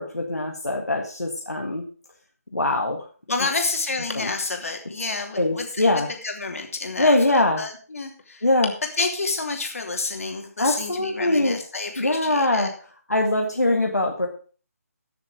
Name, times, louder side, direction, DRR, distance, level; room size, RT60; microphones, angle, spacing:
voice 1, 0.0-1.8 2.5-3.1 4.1-4.3 5.4-6.1 7.0-7.6 8.4-8.7 10.6-11.6 12.0-12.7 13.1-14.3, left 2 dB, 85° left, 1 dB, 1.8 m, -22 dB
voice 2, 3.3-8.5 9.0-12.7, left 3 dB, 60° left, 3 dB, 3.0 m, -29 dB
14.5 x 7.1 x 5.0 m, 0.40 s
figure-of-eight pair, 150°, 8 cm